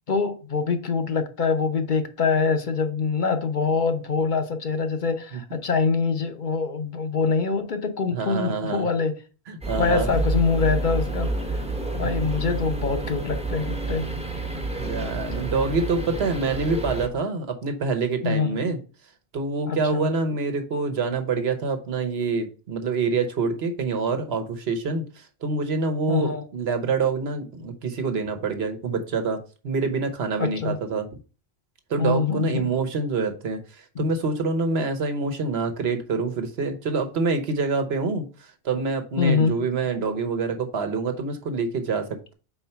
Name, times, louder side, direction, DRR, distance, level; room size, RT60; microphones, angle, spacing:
voice 1, 0.1-9.1 9.8-11.3 11.9-14.0 18.2-18.6 19.7-20.1 26.1-26.4 30.4-30.8 32.0-32.7 34.0-34.1 39.2-39.6, left 5 dB, 50° left, 7 dB, 0.8 m, -24 dB
voice 2, 8.1-8.8 9.5-10.2 12.0-12.1 14.8-18.8 19.3-31.1 31.9-38.3 38.6-42.3, right 4 dB, 75° right, 7 dB, 1.2 m, -26 dB
sound 1, 9.6-17.1, right 2 dB, 5° right, 0.8 m, -29 dB
4.4 x 4.3 x 5.7 m, 0.35 s
omnidirectional pair, 1.1 m